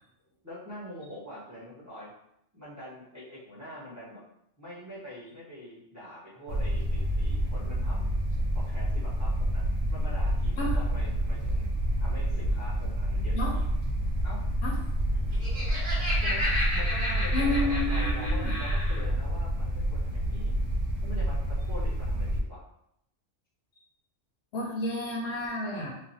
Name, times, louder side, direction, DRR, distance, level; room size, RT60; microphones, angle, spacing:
voice 1, 0.4-2.1 2.5-4.2 4.6-8.2 8.5-9.6 9.9-11.7 12.0-13.7 14.2-14.4 16.2-16.5 16.7-20.5 21.0-22.6, left 1 dB, 15° right, -8 dB, 0.8 m, -44 dB
sound 1, 6.5-22.4, equal, 85° right, 1.0 m, -28 dB
Laughter, 15.2-19.0, left 1 dB, 45° right, 1.6 m, -32 dB
voice 2, 17.3-18.5 24.5-25.9, left 2 dB, 65° left, -2 dB, 0.9 m, -31 dB
3.1 x 2.2 x 2.6 m, 0.77 s
omnidirectional pair, 1.3 m